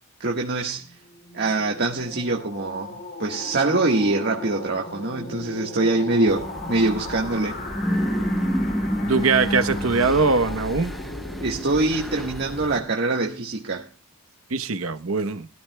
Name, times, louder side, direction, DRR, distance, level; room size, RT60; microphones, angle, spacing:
voice 1, 0.2-0.8 1.3-7.6 11.4-13.9, right 2 dB, 55° right, 1.5 m, -24 dB
sound 1, 0.8-13.4, left 2 dB, 45° left, 2.8 m, -37 dB
sound 2, 6.3-12.8, equal, ahead, 0.9 m, -29 dB
voice 2, 9.0-10.9 14.5-15.5, right 4 dB, 70° right, 1.0 m, -22 dB
21.5 x 13.0 x 2.2 m
head